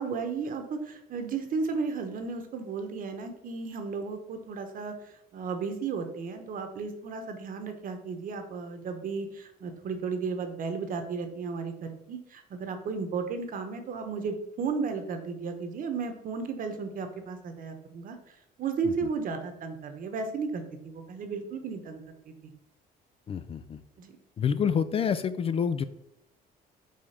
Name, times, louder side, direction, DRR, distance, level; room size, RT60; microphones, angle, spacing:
voice 1, 0.0-22.0 22.3-22.5 24.0-24.2, right 5 dB, 55° right, 7 dB, 1.0 m, -34 dB
voice 2, 23.3-23.8 24.4-25.8, left 7 dB, 35° left, 13 dB, 0.4 m, -28 dB
5.0 x 3.5 x 5.7 m, 0.79 s
cardioid pair, 110°, 17 cm